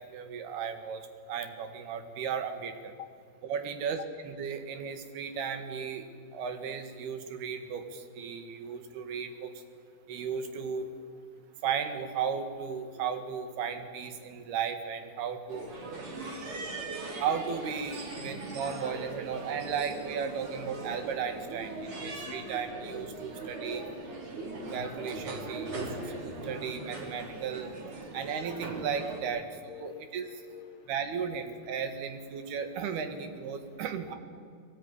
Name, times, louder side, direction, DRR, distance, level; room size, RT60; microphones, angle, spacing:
voice 1, 0.1-2.9 3.4-9.5 10.1-10.9 11.6-15.7 17.2-23.8 24.7-27.7 28.1-30.3 30.9-34.2, right 7 dB, 85° right, 8 dB, 3.8 m, -35 dB
sound 1, 15.5-29.2, right 2 dB, 55° right, 4.7 m, -40 dB
voice 2, 15.9-16.8 22.3-22.5 28.1-28.3 29.3-29.4 29.7-30.8, left 13 dB, 75° left, 9 dB, 2.0 m, -49 dB
21.0 x 18.5 x 9.9 m, 2.2 s
omnidirectional pair, 4.4 m